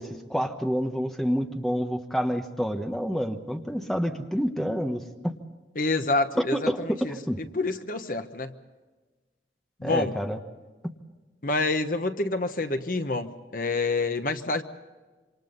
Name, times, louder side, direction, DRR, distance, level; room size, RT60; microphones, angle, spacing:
voice 1, 0.0-5.4 6.4-7.4 9.8-10.4 10.8-10.9, equal, ahead, 4 dB, 1.2 m, -28 dB
voice 2, 5.8-7.1 7.5-8.5 9.8-10.2 11.4-14.6, left 3 dB, 50° left, 8 dB, 1.1 m, -27 dB
27.0 x 26.0 x 4.1 m, 1.3 s
head